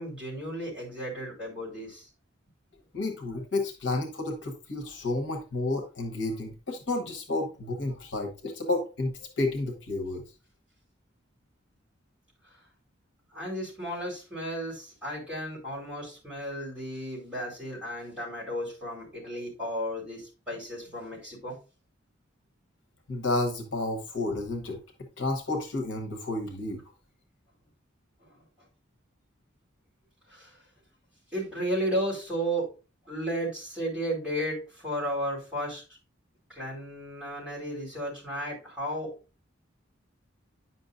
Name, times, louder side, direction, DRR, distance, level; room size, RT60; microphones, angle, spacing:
voice 1, 0.0-2.1 13.3-21.6 28.2-28.4 30.3-30.6 31.3-32.7 33.0-35.8 36.5-39.1, equal, 5° right, -6 dB, 4.5 m, -34 dB
voice 2, 2.9-10.2 23.1-24.8 25.2-26.8, left 2 dB, 65° left, 4 dB, 1.2 m, -31 dB
9.6 x 5.7 x 2.6 m, 0.31 s
head